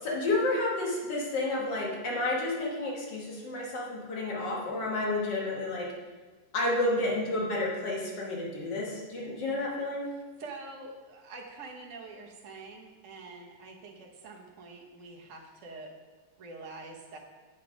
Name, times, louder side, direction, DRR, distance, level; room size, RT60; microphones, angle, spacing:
voice 1, 0.0-5.9 6.5-10.1, left 2 dB, 80° left, -3 dB, 2.1 m, -30 dB
voice 2, 6.6-7.1 10.4-15.9 16.4-17.2, right 3 dB, 50° right, -1 dB, 1.3 m, -45 dB
8.2 x 5.3 x 5.1 m, 1.3 s
omnidirectional pair, 1.9 m